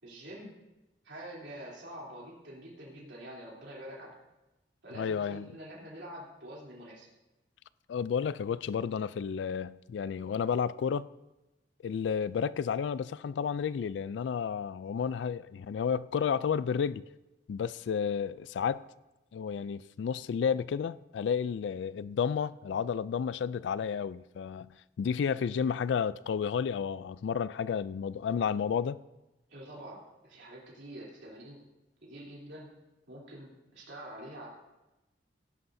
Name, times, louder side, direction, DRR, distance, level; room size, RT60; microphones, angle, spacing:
voice 1, 0.0-0.5 1.0-4.1 4.8-7.1 29.5-31.6 32.0-32.7 33.1-34.5, right 1 dB, 85° right, 3.3 m, -46 dB
voice 2, 4.9-5.5 7.9-11.1 11.8-17.0 17.5-18.8 19.3-29.0, left 7 dB, 85° left, 0.3 m, -31 dB
17.0 x 11.5 x 2.7 m
head